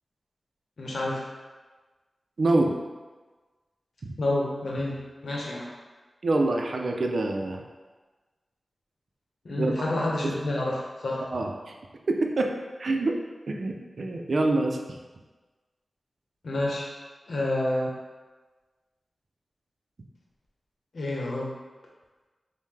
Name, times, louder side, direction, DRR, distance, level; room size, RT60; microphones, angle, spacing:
voice 1, 0.8-1.3 4.2-5.7 9.4-11.3 16.4-16.9 17.3-17.9 20.9-21.6, left 1 dB, 80° left, -2 dB, 0.8 m, -29 dB
voice 2, 2.4-2.8 6.2-7.6 9.6-9.7 10.2-10.3 11.3-11.5 12.1-12.5 12.8-13.2 13.5-14.8, right 2 dB, 70° right, 2 dB, 0.4 m, -25 dB
5.4 x 2.1 x 3.2 m, 1.3 s
cardioid pair, 55°, 0 cm